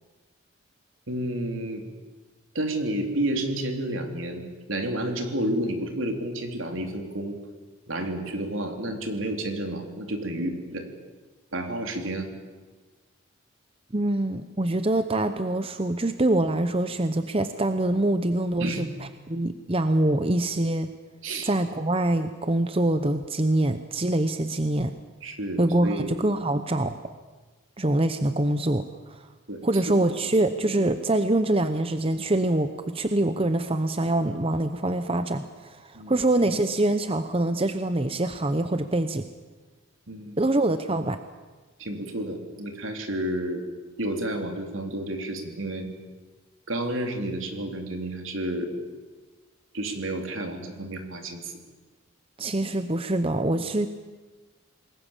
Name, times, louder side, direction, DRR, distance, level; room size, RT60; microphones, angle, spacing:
voice 1, 1.1-1.8 2.5-4.4 4.7-7.4 7.9-10.9 11.5-12.3 18.6-18.8 21.2-21.5 25.2-26.2 29.5-29.6 29.9-30.0 35.9-36.1 40.1-40.4 41.8-43.6 44.0-45.9 46.7-48.7 49.7-51.5, right 1 dB, 70° right, 4 dB, 3.6 m, -30 dB
voice 2, 13.9-20.9 21.4-24.9 25.6-27.0 27.8-29.3 29.6-39.3 40.4-41.2 52.4-53.9, right 1 dB, 25° right, 9 dB, 0.8 m, -25 dB
27.5 x 21.0 x 7.4 m, 1.3 s
head